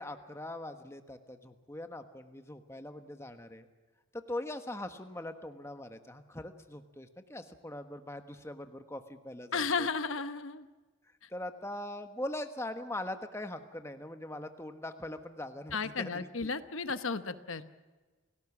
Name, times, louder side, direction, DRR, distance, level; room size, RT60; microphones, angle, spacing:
voice 1, 0.0-3.7 4.1-9.9 11.3-16.5, left 1 dB, 15° left, 7 dB, 1.3 m, -41 dB
voice 2, 9.5-10.7 11.2-11.3 15.7-17.7, left 4 dB, 70° left, 11 dB, 1.1 m, -34 dB
29.5 x 17.5 x 7.3 m, 1.3 s
head